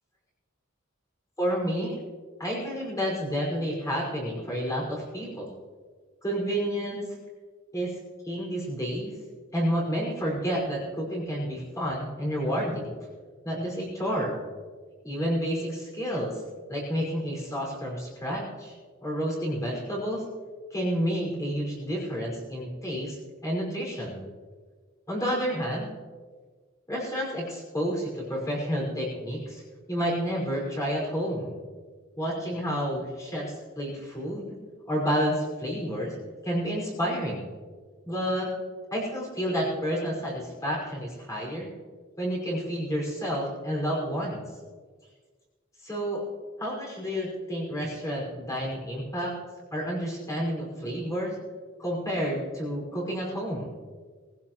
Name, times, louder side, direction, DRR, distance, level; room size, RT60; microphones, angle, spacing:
voice 1, 1.4-2.0 2.4-5.5 6.2-7.1 7.7-8.0 8.2-9.1 9.5-12.9 13.4-14.4 15.0-16.4 16.7-18.7 19.0-20.2 20.7-23.2 23.4-24.2 25.1-25.9 26.9-29.6 29.9-31.6 32.2-34.5 34.9-36.1 36.4-37.5 38.1-38.5 38.9-41.7 42.2-44.4 45.8-46.2 46.6-49.3 49.7-51.4 51.8-53.7, equal, 15° left, -3 dB, 5.4 m, -30 dB
21.0 x 15.5 x 3.1 m, 1.5 s
head